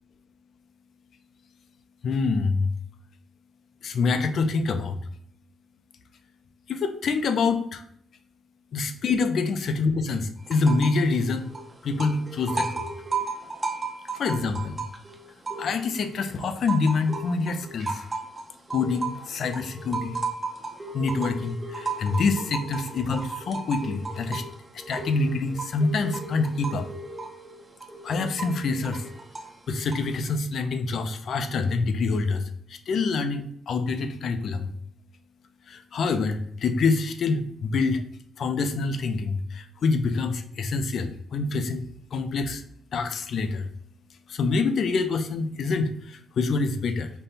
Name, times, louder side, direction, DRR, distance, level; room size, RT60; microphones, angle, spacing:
voice 1, 2.0-2.7 3.8-5.0 6.7-7.8 8.7-11.5 11.8-12.9 14.1-14.8 15.6-18.0 18.7-20.2 20.9-24.4 24.7-26.9 28.0-29.1 29.7-34.7 35.7-38.0 38.4-42.6 42.9-43.7 44.3-47.1, left 4 dB, 55° left, 9 dB, 0.4 m, -26 dB
sound 1, 10.4-11.1 11.3-16.0 16.4-30.2, right 3 dB, 15° right, 0.6 m, -35 dB
5.2 x 2.2 x 4.0 m, 0.68 s
cardioid pair, 150°, 0 cm